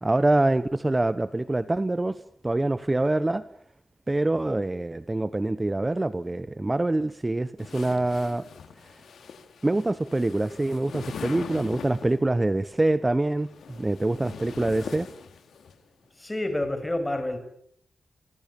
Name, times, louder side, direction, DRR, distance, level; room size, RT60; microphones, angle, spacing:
voice 1, 0.0-3.4 4.1-8.4 8.8-8.9 9.6-15.1, right 2 dB, 20° right, 14 dB, 1.0 m, -25 dB
sound 1, 7.6-12.3 13.3-15.7, left 6 dB, 90° left, 3.3 m, -41 dB
voice 2, 16.2-17.4, left 1 dB, 15° left, 9 dB, 6.6 m, -28 dB
26.5 x 26.0 x 7.1 m, 0.70 s
wide cardioid pair, 95°, 0 cm